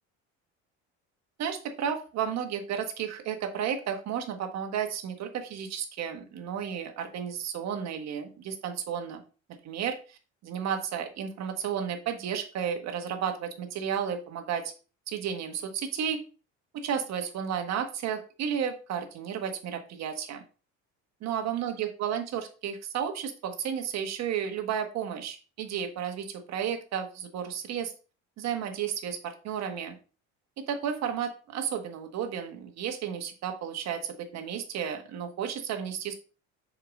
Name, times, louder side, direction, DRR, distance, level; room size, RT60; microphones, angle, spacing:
voice 1, 1.4-9.2 9.6-14.7 15.1-16.2 16.7-20.4 21.2-27.9 28.4-30.0 30.6-36.1, right 8 dB, 60° right, 6 dB, 1.5 m, -33 dB
6.7 x 4.9 x 3.8 m, 0.35 s
cardioid pair, 115°, 31 cm